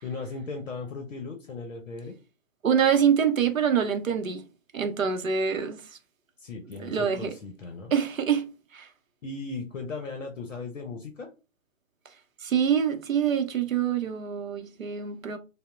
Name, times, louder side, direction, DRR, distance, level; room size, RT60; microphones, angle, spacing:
voice 1, 0.0-2.2 6.4-7.9 9.2-11.3, left 3 dB, 70° left, 0.6 m, -37 dB
voice 2, 2.6-4.4 4.7-5.9 6.8-7.3 7.9-8.9 12.4-15.4, right 7 dB, 75° right, 0.6 m, -25 dB
2.8 x 2.0 x 2.2 m
figure-of-eight pair, 130°, 40 cm